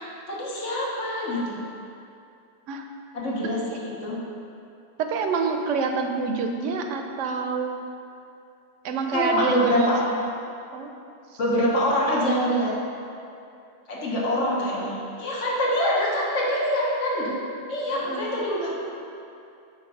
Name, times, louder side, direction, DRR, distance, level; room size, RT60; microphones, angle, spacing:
voice 1, 0.3-1.6 3.1-4.2 9.1-10.0 11.4-12.7 13.9-17.4 17.7-18.7, equal, 80° left, -5 dB, 1.5 m, -25 dB
voice 2, 5.0-7.8 8.8-10.2 10.7-10.9 11.3-11.4 17.9-18.3, right 4 dB, 85° right, 4 dB, 0.9 m, -27 dB
5.1 x 4.0 x 5.4 m, 2.6 s
omnidirectional pair, 1.2 m